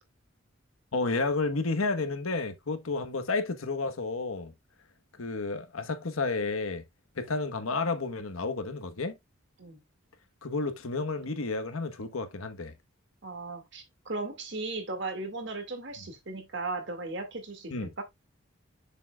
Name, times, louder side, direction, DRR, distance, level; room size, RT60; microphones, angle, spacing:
voice 1, 0.9-4.5 5.2-6.8 7.1-9.1 10.4-12.7 17.7-17.9, left 3 dB, 90° left, 1.2 m, -31 dB
voice 2, 13.2-18.0, right 3 dB, 55° right, 2.0 m, -37 dB
7.2 x 6.9 x 2.3 m
head